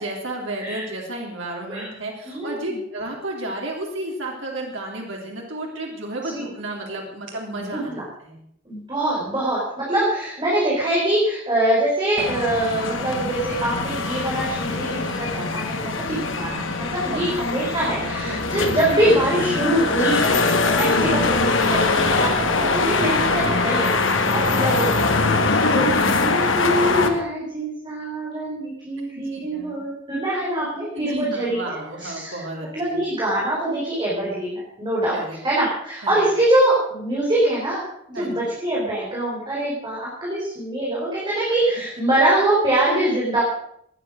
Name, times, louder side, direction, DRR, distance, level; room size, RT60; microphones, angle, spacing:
voice 1, 0.0-8.4 17.1-17.6 18.3-18.5 29.1-29.8 31.0-33.0 35.1-35.4 36.0-36.2 38.1-38.5, right 1 dB, 75° right, -1 dB, 3.5 m, -32 dB
voice 2, 2.2-2.8 6.3-6.4 7.6-8.0 8.6-24.0 24.3-32.4 32.7-43.4, right 1 dB, 25° right, -6 dB, 4.9 m, -24 dB
sound 1, 12.2-27.1, left 3 dB, 75° left, 1.9 m, -22 dB
18.5 x 10.0 x 6.5 m, 0.72 s
head